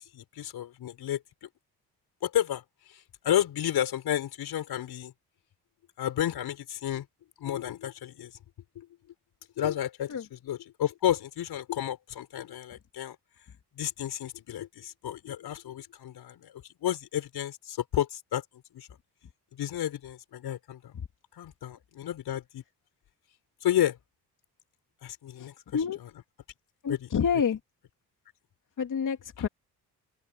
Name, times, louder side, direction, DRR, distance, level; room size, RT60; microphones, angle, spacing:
voice 1, 0.0-1.5 2.2-2.6 2.9-5.1 6.0-7.1 7.4-8.3 8.8-8.9 9.6-13.2 13.8-16.5 16.8-18.4 18.7-18.9 19.5-20.9 21.4-22.6 23.6-24.0 25.0-25.5 26.9-27.1, left 11 dB, 75° left, 5.2 m, -31 dB
voice 2, 25.4-26.0 26.8-27.6 28.8-29.5, left 7 dB, 50° left, 2.8 m, -29 dB
cardioid pair, 90°, 38 cm